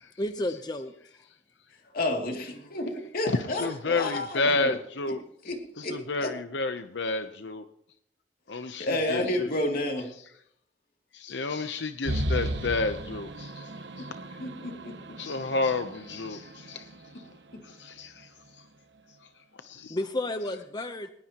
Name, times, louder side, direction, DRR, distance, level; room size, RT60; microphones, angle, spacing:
voice 1, 0.2-1.2 19.9-21.1, left 1 dB, 25° left, 8 dB, 0.8 m, -32 dB
voice 2, 1.9-4.8 5.4-6.3 8.8-10.1 14.4-14.9, left 1 dB, 55° left, 2 dB, 2.7 m, -31 dB
voice 3, 3.3-5.2 5.8-7.6 8.5-9.5 11.1-13.5 15.2-16.9 17.8-18.3 19.6-20.0, left 3 dB, 80° left, 9 dB, 0.8 m, -30 dB
sound 1, 12.1-17.6, right 1 dB, 85° right, 1.3 m, -35 dB
20.0 x 19.5 x 3.0 m, 0.71 s
head